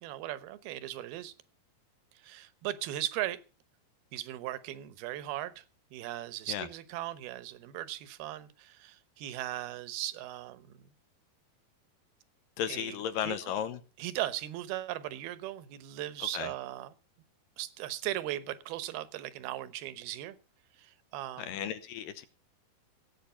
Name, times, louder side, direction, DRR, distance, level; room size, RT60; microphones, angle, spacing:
voice 1, 0.0-1.3 2.2-3.4 4.1-5.6 5.9-10.7 12.7-13.0 13.2-13.4 14.0-16.9 17.6-20.4 20.8-21.5, right 14 dB, 75° right, 2.8 m, -38 dB
voice 2, 12.6-13.8 16.2-16.5 21.4-22.3, left 9 dB, 75° left, 2.2 m, -35 dB
17.5 x 8.4 x 5.6 m
omnidirectional pair, 4.5 m